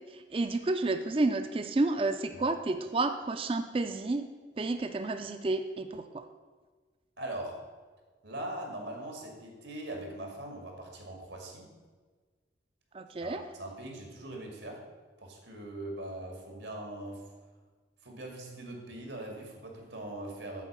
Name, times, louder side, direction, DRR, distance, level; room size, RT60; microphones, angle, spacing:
voice 1, 0.0-4.3 4.6-6.2 12.9-13.4, right 2 dB, 30° right, 8 dB, 0.4 m, -30 dB
voice 2, 7.2-7.6 8.2-11.7 13.2-14.8 15.2-17.3 18.0-20.6, right 1 dB, 90° right, 1 dB, 2.1 m, -41 dB
8.4 x 4.5 x 7.2 m, 1.4 s
head